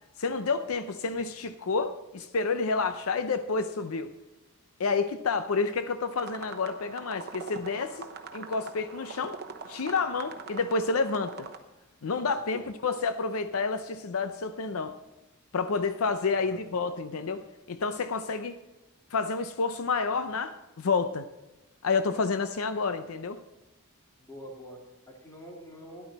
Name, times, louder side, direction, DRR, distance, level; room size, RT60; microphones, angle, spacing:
voice 1, 0.2-4.1 4.8-9.4 9.7-11.3 12.0-14.9 15.5-18.6 19.1-21.3 21.8-23.4, left 4 dB, 75° left, 10 dB, 0.6 m, -29 dB
sound 1, 6.2-11.6, right 4 dB, 50° right, 1.0 m, -43 dB
voice 2, 16.3-16.6 24.2-26.1, equal, 15° left, -1 dB, 2.6 m, -46 dB
13.0 x 11.0 x 4.1 m, 1.0 s
head